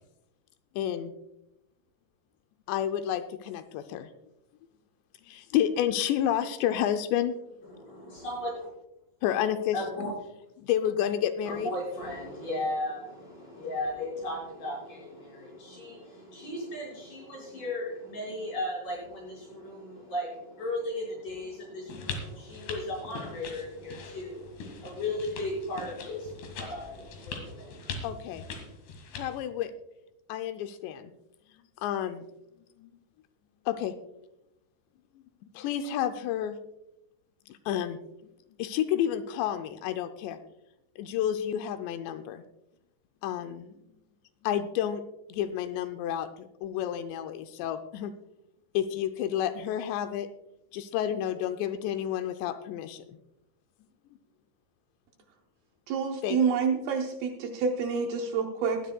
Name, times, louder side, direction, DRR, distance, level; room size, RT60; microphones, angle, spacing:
voice 1, 0.8-1.1 2.7-4.1 5.3-7.3 9.2-9.8 10.6-11.7 28.0-28.5 29.2-29.7 30.3-31.1 31.8-32.3 32.8-32.9 33.7-34.0 35.4-36.6 37.5-38.0 38.6-40.4 41.0-42.4 43.2-43.7 44.4-45.0 45.3-48.1 48.7-50.3 50.7-53.2 56.2-56.4, left 10 dB, 85° left, 8 dB, 2.8 m, -30 dB
voice 2, 7.7-8.7 9.7-10.1 11.4-28.1, left 1 dB, 50° left, -4 dB, 6.6 m, -36 dB
sound 1, 21.9-29.4, left 4 dB, 65° left, 3.6 m, -41 dB
voice 3, 55.9-58.8, right 5 dB, 75° right, 3 dB, 2.4 m, -28 dB
19.5 x 12.5 x 2.3 m, 0.90 s
omnidirectional pair, 5.0 m